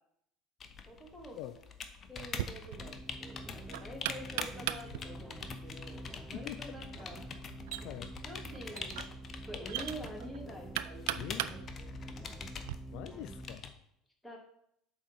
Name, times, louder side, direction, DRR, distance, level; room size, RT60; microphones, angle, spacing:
sound 1, 0.6-13.7, left 5 dB, 40° left, 0.9 m, -46 dB
voice 1, 0.9-1.5 2.1-2.9 3.2-6.0 6.3-7.2 8.2-9.2 9.5-12.3 14.2-14.4, equal, 5° left, -2 dB, 2.6 m, -47 dB
Knock, 2.2-12.8, right 14 dB, 75° right, 0.3 m, -41 dB
sound 2, 2.8-13.6, right 1 dB, 15° right, 0.6 m, -47 dB
voice 2, 7.8-8.1 11.1-11.5 12.9-13.7, left 14 dB, 65° left, 12 dB, 0.4 m, -44 dB
8.0 x 4.0 x 5.8 m, 0.74 s
hypercardioid pair, 75°, 0 cm